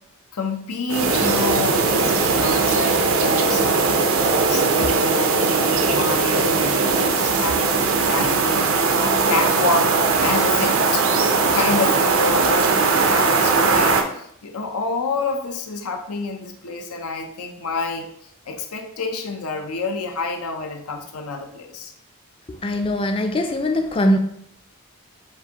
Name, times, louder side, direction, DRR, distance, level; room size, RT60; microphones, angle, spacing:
voice 1, 0.3-4.0 4.5-8.8 9.3-18.1 18.5-21.9, left 3 dB, 90° left, 4 dB, 0.6 m, -28 dB
sound 1, 0.9-14.0, right 4 dB, 70° right, 0.5 m, -19 dB
voice 2, 22.5-24.2, left 1 dB, 25° left, 5 dB, 0.4 m, -21 dB
7.2 x 2.6 x 2.8 m, 0.70 s
head